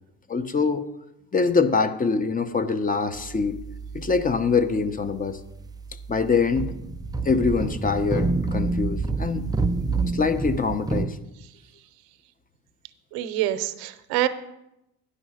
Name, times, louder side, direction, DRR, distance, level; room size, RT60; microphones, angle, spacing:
voice 1, 0.3-0.9 1.3-3.6 3.9-5.4 6.1-6.7 7.2-9.4 10.1-11.2, left 4 dB, 25° left, 11 dB, 0.7 m, -24 dB
sound 1, 3.2-5.1 5.4-11.1, right 3 dB, 10° right, 0.4 m, -29 dB
voice 2, 13.1-14.3, right 13 dB, 80° right, 12 dB, 0.8 m, -26 dB
9.9 x 5.6 x 6.3 m, 0.87 s
supercardioid pair, 95°, 37 cm